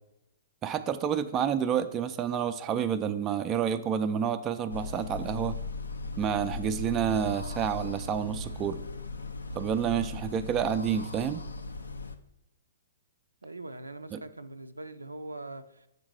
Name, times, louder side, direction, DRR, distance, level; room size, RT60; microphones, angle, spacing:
voice 1, 0.6-5.6 6.2-8.8 9.5-11.4 14.1-14.2, right 8 dB, 25° right, 9 dB, 0.4 m, -29 dB
sound 1, 4.7-12.2, left 3 dB, 80° left, 0.5 m, -38 dB
voice 2, 13.4-15.9, right 2 dB, 90° right, 10 dB, 0.4 m, -42 dB
7.4 x 4.0 x 5.9 m, 0.87 s
figure-of-eight pair, 120°, 0 cm